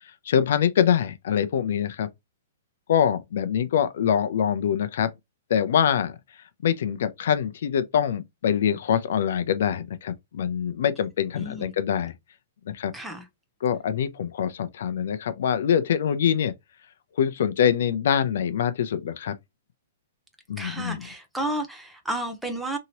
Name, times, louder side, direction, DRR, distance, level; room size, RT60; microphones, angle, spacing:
voice 1, 0.3-2.1 2.9-5.1 5.5-6.2 6.6-12.1 12.7-12.9 13.6-16.5 17.2-19.3 20.5-21.0, left 8 dB, 65° left, 0.4 m, -24 dB
voice 2, 11.4-11.7 12.9-13.3 20.6-22.8, right 1 dB, 5° right, 0.6 m, -32 dB
2.9 x 2.8 x 2.8 m
hypercardioid pair, 165°, 0 cm